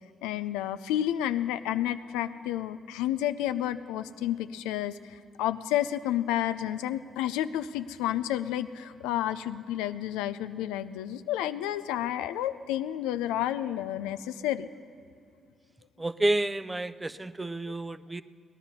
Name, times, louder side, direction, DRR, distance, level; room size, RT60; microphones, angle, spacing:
voice 1, 0.2-14.7, left 12 dB, 90° left, 12 dB, 0.4 m, -30 dB
voice 2, 16.0-18.2, right 1 dB, 20° right, 15 dB, 0.5 m, -30 dB
18.5 x 11.0 x 5.6 m, 2.3 s
supercardioid pair, 55°, 0 cm